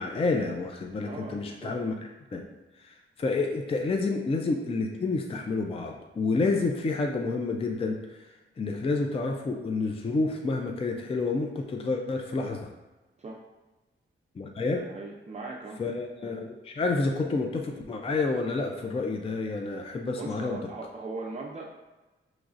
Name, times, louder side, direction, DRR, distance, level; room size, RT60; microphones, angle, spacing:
voice 1, 0.0-1.9 2.3-2.4 2.8-12.7 14.4-14.8 15.8-20.6, left 3 dB, 30° left, 2 dB, 0.4 m, -29 dB
voice 2, 1.0-1.8 13.2-13.4 14.7-15.8 20.1-21.6, right 3 dB, 35° right, -2 dB, 0.4 m, -39 dB
6.1 x 3.0 x 2.5 m, 1.1 s
wide cardioid pair, 130°, 21 cm